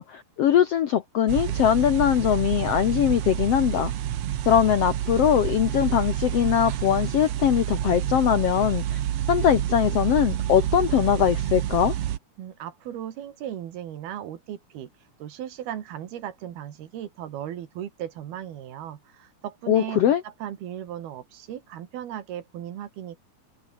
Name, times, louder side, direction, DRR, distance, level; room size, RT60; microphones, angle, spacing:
voice 1, 0.0-3.9 4.5-9.0 9.3-11.9 19.7-20.2, left 10 dB, 75° left, 1.4 m, -21 dB
sound 1, 1.3-12.2, right 12 dB, 65° right, 1.7 m, -28 dB
voice 2, 12.4-14.9 15.2-23.2, right 11 dB, 90° right, 4.0 m, -36 dB
open air
omnidirectional pair, 4.3 m